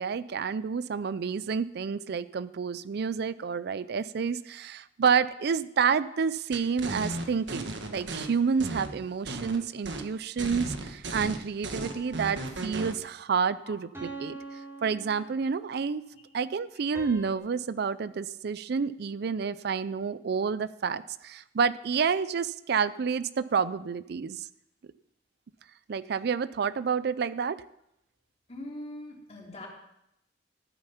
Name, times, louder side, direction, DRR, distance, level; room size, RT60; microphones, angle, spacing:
voice 1, 0.0-14.4 14.8-16.0 16.3-24.4 25.9-27.6, right 6 dB, 60° right, 15 dB, 0.4 m, -29 dB
sound 1, 6.5-8.2 8.6-9.6 9.8-10.1 10.4-12.9, right 2 dB, 85° right, 1.4 m, -35 dB
sound 2, 11.8-12.8 13.9-15.8 16.9-17.4, right 3 dB, 15° right, 3.3 m, -44 dB
voice 2, 28.5-29.7, left 1 dB, 35° left, -2 dB, 3.5 m, -42 dB
13.5 x 9.1 x 5.7 m, 0.80 s
head